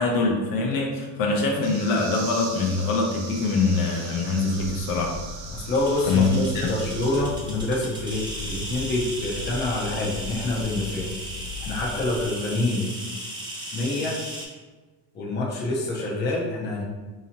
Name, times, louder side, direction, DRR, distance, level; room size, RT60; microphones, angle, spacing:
voice 1, 0.0-5.2 6.1-6.7, left 3 dB, 60° left, 0 dB, 0.7 m, -23 dB
sound 1, 1.6-7.2, right 4 dB, 70° right, 0.7 m, -39 dB
sound 2, 4.6-12.3, left 2 dB, 90° left, 0.9 m, -38 dB
voice 2, 5.5-11.2 11.6-12.9 13.7-14.2 15.1-16.8, left 2 dB, 25° left, -3 dB, 0.7 m, -27 dB
sound 3, 5.7-14.5, right 1 dB, 10° right, 0.5 m, -36 dB
4.0 x 2.9 x 2.8 m, 1.3 s
cardioid pair, 155°, 39 cm